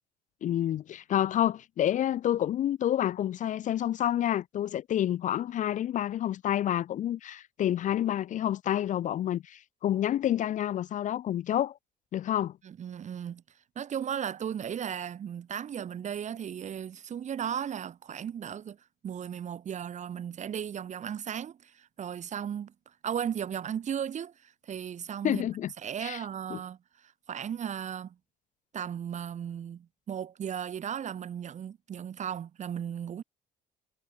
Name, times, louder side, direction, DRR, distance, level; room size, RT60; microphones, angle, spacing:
voice 1, 0.4-11.8 12.1-12.5 25.2-25.7 26.0-26.2 26.5-26.6, left 11 dB, 50° left, 0.5 m, -28 dB
voice 2, 12.6-13.4 13.7-18.8 19.0-22.7 23.0-25.5 25.8-28.2 28.7-33.2, right 8 dB, 45° right, 1.7 m, -36 dB
cardioid pair, 110°, 17 cm